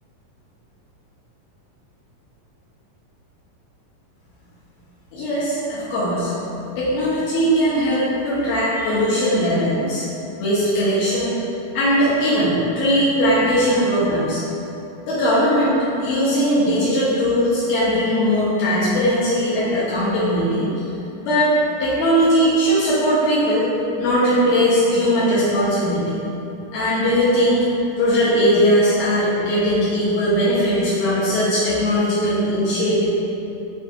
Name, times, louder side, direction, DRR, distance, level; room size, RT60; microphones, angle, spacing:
voice 1, 5.1-6.3 6.8-10.1 10.4-11.4 11.7-14.4 15.1-20.7 21.2-23.7 24.0-26.2 26.7-27.7 28.0-33.1, equal, 80° left, -11 dB, 2.4 m, -19 dB
7.1 x 2.4 x 2.6 m, 3.0 s
omnidirectional pair, 4.0 m